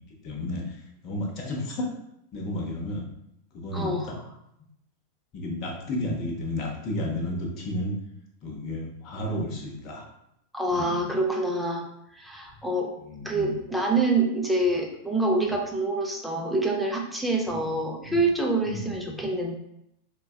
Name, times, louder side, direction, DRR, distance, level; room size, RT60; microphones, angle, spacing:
voice 1, 0.2-0.8 1.0-1.9 2.3-3.1 3.5-4.2 5.3-8.0 8.4-10.1 10.7-10.9 13.0-13.5 17.5-17.7 18.0-18.2 18.6-19.3, left 1 dB, 35° left, 0 dB, 0.8 m, -32 dB
voice 2, 3.7-4.1 10.5-11.8 12.1-12.9 13.2-19.6, right 2 dB, ahead, -1 dB, 0.6 m, -26 dB
4.4 x 2.2 x 2.3 m, 0.80 s
figure-of-eight pair, 90°, 0 cm